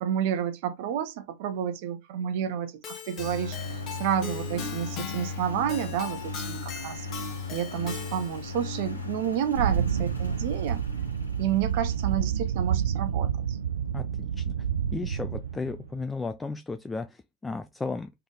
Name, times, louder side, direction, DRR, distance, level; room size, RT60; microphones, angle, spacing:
voice 1, 0.0-7.1 7.5-10.8 11.4-13.6, right 9 dB, 50° right, 0.8 m, -30 dB
Keyboard (musical), 2.8-8.5, left 6 dB, 30° left, 1.1 m, -40 dB
Engine, 3.2-12.6, left 3 dB, 80° left, 1.2 m, -37 dB
sound 1, 9.5-15.9, right 8 dB, 70° right, 0.4 m, -29 dB
voice 2, 14.9-18.1, left 3 dB, 10° left, 0.3 m, -34 dB
3.5 x 3.4 x 3.7 m
figure-of-eight pair, 90°, 0 cm